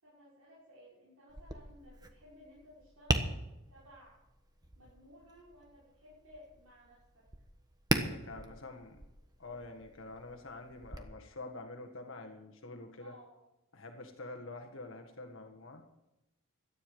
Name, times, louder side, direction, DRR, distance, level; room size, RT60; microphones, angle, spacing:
voice 1, 0.0-4.2 4.8-7.2 13.0-13.4, equal, 75° right, -8 dB, 6.3 m, -57 dB
Tap, 1.3-11.0, right 1 dB, 15° right, 1.2 m, -39 dB
voice 2, 8.0-9.0 9.4-13.1 13.7-15.9, left 2 dB, 60° left, 3 dB, 1.8 m, -47 dB
17.5 x 12.5 x 5.0 m, 0.94 s
head